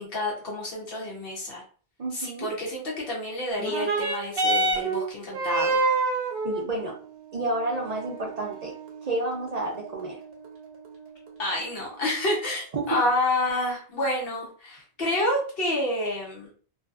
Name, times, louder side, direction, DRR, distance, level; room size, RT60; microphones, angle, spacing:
voice 1, 0.0-1.6 2.1-5.8 11.4-16.5, left 1 dB, 70° left, -3 dB, 1.0 m, -29 dB
voice 2, 2.0-2.5 6.4-7.0 7.3-8.7 9.0-10.2 12.7-12.8, right 2 dB, 50° right, -2 dB, 0.6 m, -30 dB
sound 1, 3.6-12.5 13.4-13.5, right 3 dB, 75° right, 0.9 m, -30 dB
2.7 x 2.4 x 2.3 m, 0.42 s
omnidirectional pair, 1.0 m